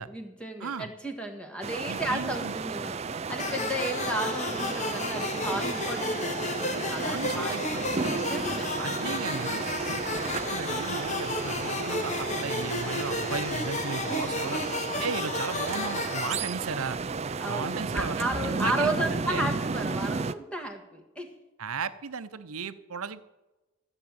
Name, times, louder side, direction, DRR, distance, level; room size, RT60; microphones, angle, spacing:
voice 1, 0.0-9.4 14.1-14.3 17.4-21.4, right 1 dB, 5° left, 3 dB, 1.4 m, -34 dB
sound 1, 1.6-20.3, right 4 dB, 30° right, 0.4 m, -33 dB
voice 2, 1.9-2.5 7.0-7.8 8.8-10.0 10.5-14.7 15.0-17.0 17.5-18.2 18.6-19.5 21.6-23.2, right 5 dB, 85° right, 13 dB, 0.8 m, -35 dB
sound 2, 3.4-16.4, left 3 dB, 35° left, 1.0 m, -33 dB
Bowed string instrument, 7.9-13.7, right 2 dB, 45° right, 1.1 m, -41 dB
14.5 x 7.2 x 8.8 m, 1.1 s
head